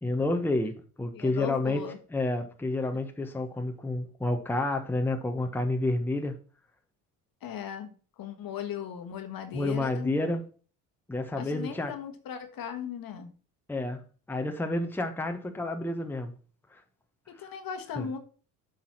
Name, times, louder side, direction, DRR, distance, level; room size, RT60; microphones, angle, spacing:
voice 1, 0.0-6.4 9.5-10.4 11.1-11.9 13.7-14.0 14.3-16.3 16.7-16.8 17.4-17.5 18.0-18.1, left 2 dB, 5° left, 1.1 m, -30 dB
voice 2, 1.1-2.0 7.4-7.9 8.2-10.1 11.3-13.3 17.3-18.2, left 8 dB, 50° left, 1.6 m, -37 dB
7.5 x 4.1 x 6.0 m
hypercardioid pair, 65°, 45 cm